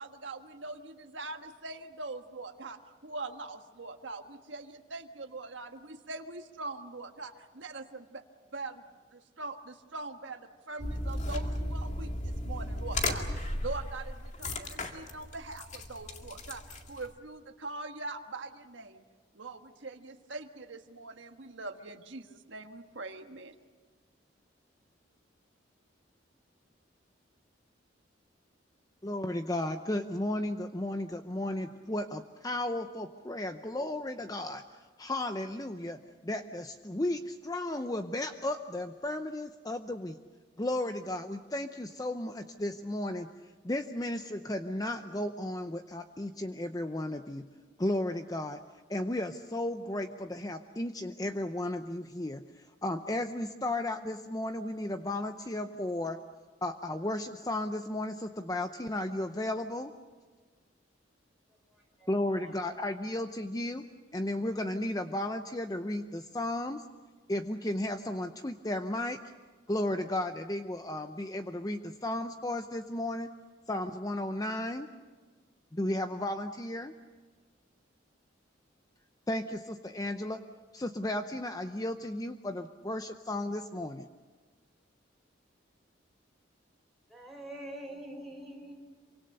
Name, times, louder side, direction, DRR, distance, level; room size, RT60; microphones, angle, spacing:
voice 1, 0.0-8.2 8.5-8.8 9.1-19.0 19.3-23.5, right 3 dB, 75° right, 1.5 m, -42 dB
sound 1, 10.8-17.1, left 1 dB, 40° left, 2.1 m, -35 dB
voice 2, 29.0-40.2 40.6-47.5 47.8-48.6 48.9-56.2 56.6-59.9 62.1-63.8 64.1-66.8 67.3-69.2 69.7-73.3 73.7-74.9 75.7-76.9 79.3-80.4 80.7-84.1, left 1 dB, 20° left, 0.7 m, -34 dB
voice 3, 61.7-62.1 62.4-62.9 87.1-88.7, right 1 dB, ahead, 4.3 m, -45 dB
27.5 x 25.0 x 6.7 m
head